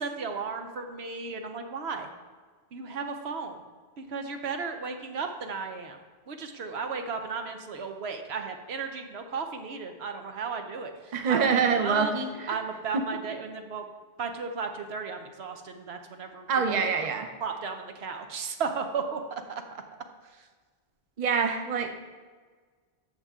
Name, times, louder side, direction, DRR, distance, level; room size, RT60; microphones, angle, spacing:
voice 1, 0.0-2.1 2.7-3.6 4.0-6.0 6.3-12.1 12.5-13.8 14.2-17.1 17.4-19.8 20.2-20.5, right 5 dB, 80° right, 5 dB, 1.1 m, -35 dB
voice 2, 11.1-12.5 12.9-13.0 16.5-17.3 21.2-21.9, right 5 dB, 45° right, 6 dB, 0.8 m, -25 dB
13.0 x 6.7 x 3.6 m, 1.5 s
omnidirectional pair, 1.1 m